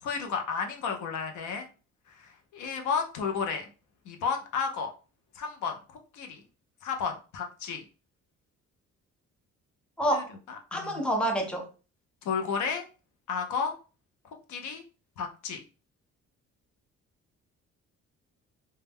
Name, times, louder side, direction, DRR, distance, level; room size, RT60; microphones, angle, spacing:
voice 1, 0.0-1.7 2.1-3.7 4.1-4.9 5.3-6.4 6.8-7.8 10.1-11.0 12.2-12.8 13.3-13.7 14.5-14.8 15.2-15.6, left 6 dB, 75° left, 0.6 m, -32 dB
voice 2, 10.0-10.3 10.7-11.6, right 1 dB, 5° left, 0.7 m, -27 dB
2.2 x 2.0 x 3.4 m
cardioid pair, 90°, 30 cm